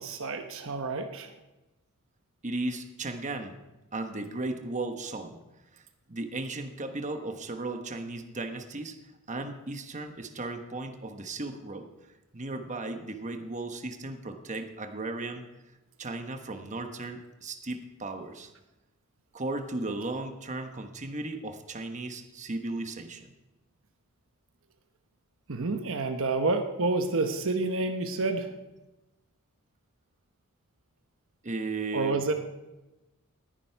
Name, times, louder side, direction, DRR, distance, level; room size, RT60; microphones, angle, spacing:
voice 1, 0.0-1.3 25.5-28.5 31.9-32.3, right 3 dB, 65° right, 6 dB, 1.0 m, -29 dB
voice 2, 2.4-3.6 3.9-5.4 5.7-5.8 6.1-9.0 9.3-11.9 12.3-15.4 16.0-18.5 19.3-23.3 31.4-32.2, right 2 dB, 35° right, 6 dB, 1.2 m, -36 dB
19.5 x 10.5 x 4.6 m, 1.0 s
head